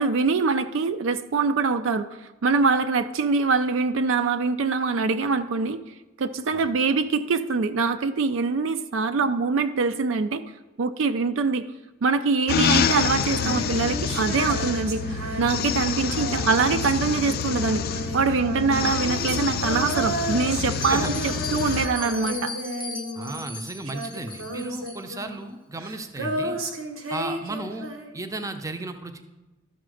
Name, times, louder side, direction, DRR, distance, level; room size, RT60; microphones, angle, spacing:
voice 1, 0.0-2.1 2.4-5.8 6.2-10.4 10.8-11.6 12.0-15.0 15.4-17.8 18.1-22.5, right 4 dB, 65° right, 10 dB, 0.4 m, -24 dB
sound 1, 12.5-21.9, left 6 dB, 50° left, 0.4 m, -27 dB
Female singing, 13.2-23.6 23.8-28.3, right 1 dB, 90° right, 1.0 m, -33 dB
Bell, 20.6-25.3, left 3 dB, 25° left, 0.9 m, -38 dB
voice 2, 23.2-26.6 27.1-27.9 28.1-29.2, right 2 dB, 15° right, 7 dB, 0.5 m, -34 dB
12.5 x 4.2 x 6.3 m, 1.1 s
head